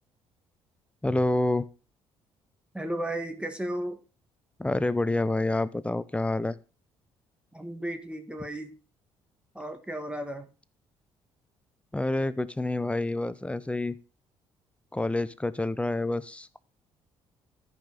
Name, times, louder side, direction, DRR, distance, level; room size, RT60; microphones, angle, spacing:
voice 1, 1.0-1.7 4.6-6.6 11.9-14.0 14.9-16.6, left 2 dB, 10° left, 16 dB, 0.8 m, -28 dB
voice 2, 2.7-4.0 7.5-8.7 9.5-10.5, right 1 dB, 10° right, 6 dB, 1.6 m, -34 dB
13.5 x 5.5 x 4.0 m, 0.34 s
hypercardioid pair, 50°, 13 cm